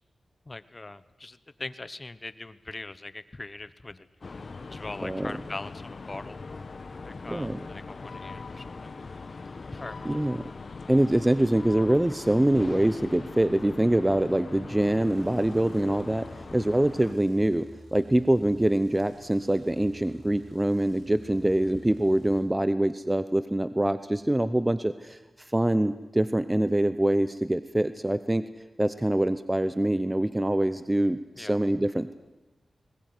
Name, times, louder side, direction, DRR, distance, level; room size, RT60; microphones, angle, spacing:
voice 1, 0.5-4.1 4.7-6.4 7.0-9.0 9.6-10.2 21.4-21.5 31.4-31.6, left 2 dB, 30° left, 14 dB, 1.1 m, -41 dB
sound 1, 4.2-17.1, left 4 dB, 50° left, 1.5 m, -41 dB
voice 2, 7.3-7.6 10.0-10.4 10.9-28.5 28.8-32.1, right 1 dB, 15° right, 12 dB, 0.7 m, -24 dB
sound 2, 15.0-22.4, right 1 dB, 85° right, 6.3 m, -52 dB
20.5 x 20.5 x 9.6 m, 1.1 s
wide cardioid pair, 85°, 0 cm